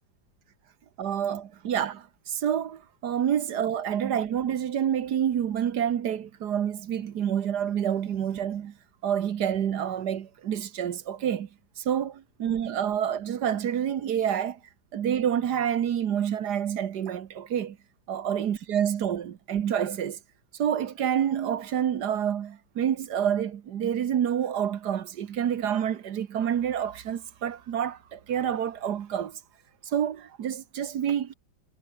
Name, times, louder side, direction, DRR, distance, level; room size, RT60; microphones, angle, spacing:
voice 1, 1.0-8.7 9.0-11.5 11.8-14.6 14.9-17.8 18.1-20.2 20.6-29.4 29.8-31.3, right 9 dB, 60° right, 1.6 m, -28 dB
omnidirectional pair, 2.1 m